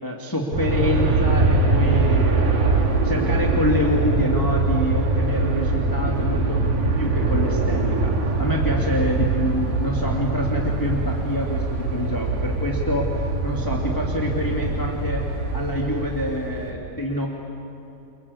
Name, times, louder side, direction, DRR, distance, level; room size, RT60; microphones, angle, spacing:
voice 1, 0.0-2.8 3.0-15.2 15.5-17.3, left 1 dB, 10° left, -1 dB, 1.5 m, -26 dB
Aircraft, 0.5-16.7, right 3 dB, 70° right, 4.3 m, -22 dB
29.0 x 24.0 x 8.5 m, 2.8 s
omnidirectional pair, 4.2 m